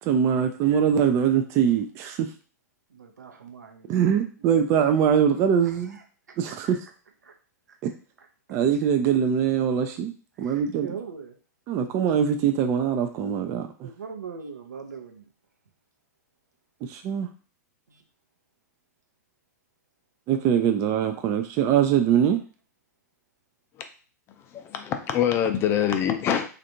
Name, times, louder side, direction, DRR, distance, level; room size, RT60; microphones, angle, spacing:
voice 1, 0.0-2.3 3.9-6.0 6.4-6.8 7.8-7.9 8.5-10.1 10.4-10.9 11.7-13.9 16.8-17.3 20.3-22.4, right 8 dB, 30° right, 6 dB, 0.3 m, -23 dB
voice 2, 2.9-4.2 5.6-6.0 6.5-6.7 7.2-7.3 7.7-7.8 8.2-8.6 10.3-11.4 13.8-15.3 17.9-18.0, right 6 dB, 75° right, 4 dB, 0.7 m, -42 dB
voice 3, 24.5-26.5, left 9 dB, 25° left, 6 dB, 0.5 m, -24 dB
3.3 x 2.5 x 2.7 m, 0.37 s
figure-of-eight pair, 105°, 9 cm